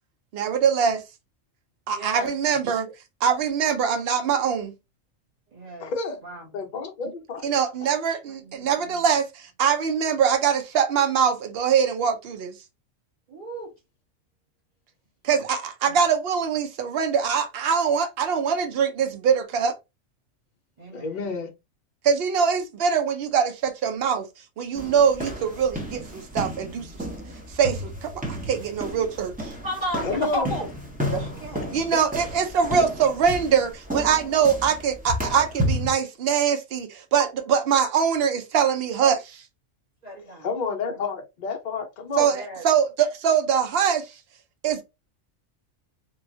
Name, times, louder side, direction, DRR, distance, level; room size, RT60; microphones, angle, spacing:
voice 1, 0.3-1.0 1.9-2.9 3.2-4.7 7.4-12.5 15.2-19.8 22.0-24.3 24.6-26.9 27.5-29.5 31.7-39.4 42.2-44.1 44.6-44.8, right 7 dB, 60° right, 0.7 m, -23 dB
voice 2, 1.9-2.3 5.5-5.9 6.2-6.5 8.3-9.0 13.3-13.7 15.8-16.0 20.8-21.4 24.8-25.0 28.2-28.5 29.6-30.1 30.3-30.7 31.0-31.7 40.0-40.5 40.9-41.0 42.3-42.6, equal, 35° right, 1.1 m, -35 dB
voice 3, 5.8-6.2 6.5-7.5 7.8-7.9 20.9-21.5 30.0-30.5 40.4-42.3, left 4 dB, 45° left, 0.6 m, -29 dB
sound 1, 24.7-35.9, equal, 10° right, 0.4 m, -32 dB
3.0 x 2.2 x 2.5 m
omnidirectional pair, 1.4 m